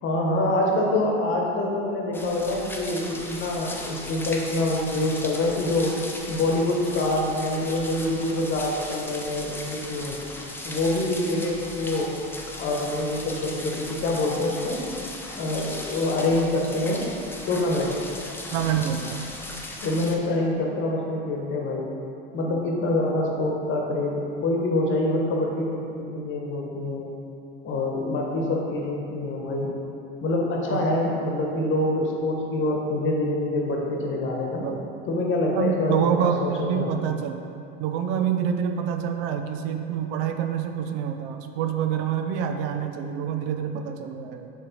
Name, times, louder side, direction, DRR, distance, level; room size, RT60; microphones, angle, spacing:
voice 1, 0.0-6.0 6.3-10.2 10.6-12.1 12.6-14.8 15.3-17.1 17.5-17.9 19.8-21.9 22.3-27.1 27.6-29.7 30.2-34.7 35.1-37.0, left 2 dB, 40° left, -1 dB, 1.2 m, -26 dB
sound 1, 2.1-20.2, left 2 dB, 5° left, 0.6 m, -37 dB
voice 2, 18.5-19.3 22.5-22.6 30.7-30.8 34.6-34.8 35.6-37.4 37.8-44.5, right 8 dB, 65° right, 6 dB, 0.5 m, -27 dB
6.5 x 3.3 x 4.3 m, 2.6 s
hypercardioid pair, 90°, 30 cm